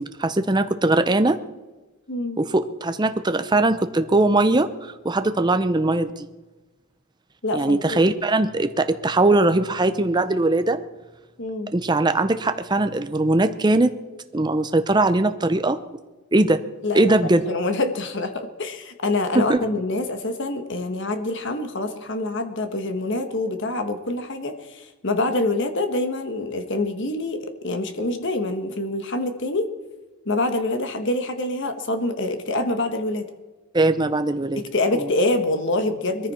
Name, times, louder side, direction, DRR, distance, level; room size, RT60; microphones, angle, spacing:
voice 1, 0.0-1.4 2.4-6.3 7.5-10.8 11.7-13.9 14.3-15.8 16.3-16.6 16.9-17.5 19.3-19.6 33.7-34.6 34.9-35.1 36.2-36.3, right 2 dB, 20° right, 9 dB, 0.6 m, -20 dB
voice 2, 2.1-2.4 7.4-8.0 11.4-11.7 16.8-17.2 17.5-29.7 30.2-33.3 34.6-36.3, left 2 dB, 55° left, 7 dB, 1.4 m, -26 dB
21.0 x 14.5 x 4.3 m, 1.2 s
head